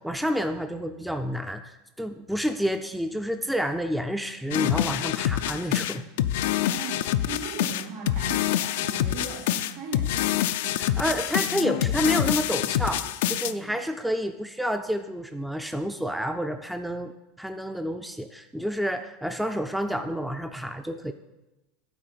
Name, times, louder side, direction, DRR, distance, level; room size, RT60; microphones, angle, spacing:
voice 1, 0.0-6.1 10.8-13.0 13.3-17.1 17.4-21.1, equal, ahead, 7 dB, 0.4 m, -29 dB
sound 1, 4.5-13.5, left 12 dB, 75° left, 0.3 m, -26 dB
voice 2, 6.7-10.8 13.2-13.7, right 5 dB, 70° right, -1 dB, 3.2 m, -39 dB
9.5 x 3.8 x 6.6 m, 1.0 s
supercardioid pair, 125°, 0 cm